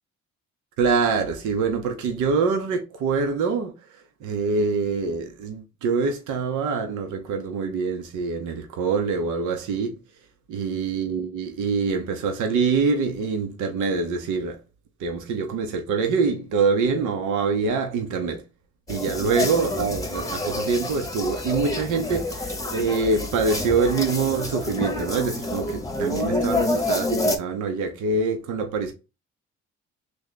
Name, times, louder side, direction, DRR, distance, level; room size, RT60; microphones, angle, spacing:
voice 1, 0.8-10.0 10.5-14.6 15.0-18.4 18.9-28.9, right 4 dB, 90° right, 0.8 m, -25 dB
sound 1, 18.9-27.4, left 2 dB, 10° left, 0.8 m, -28 dB
3.3 x 2.2 x 3.9 m
cardioid pair, 90°, 30 cm